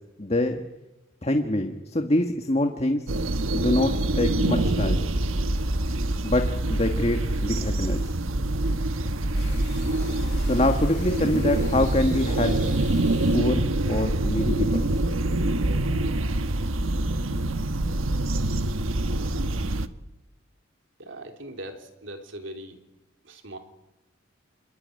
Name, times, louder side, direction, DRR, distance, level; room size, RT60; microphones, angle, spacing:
voice 1, 0.2-0.6 1.2-3.0 3.5-5.1 6.2-8.1 10.4-12.6 13.3-14.8, left 1 dB, 30° left, 5 dB, 1.6 m, -25 dB
sound 1, 3.1-19.9, right 1 dB, 85° right, 1.3 m, -25 dB
sound 2, 9.4-13.4, left 4 dB, 55° left, 3.3 m, -45 dB
voice 2, 21.0-22.8 23.2-23.6, right 1 dB, 65° right, 5 dB, 3.8 m, -40 dB
27.5 x 22.5 x 9.7 m, 1.0 s
head